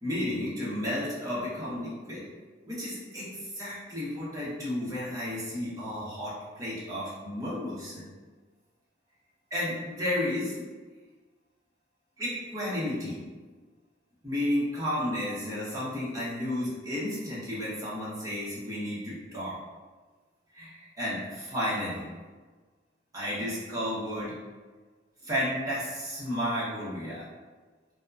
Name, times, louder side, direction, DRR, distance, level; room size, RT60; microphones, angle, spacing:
voice 1, 0.0-2.2 2.6-8.0 9.5-10.6 12.2-13.2 14.2-19.6 20.5-22.0 23.1-24.3 25.2-27.2, left 1 dB, 20° right, -9 dB, 0.8 m, -32 dB
2.8 x 2.2 x 2.4 m, 1.4 s
head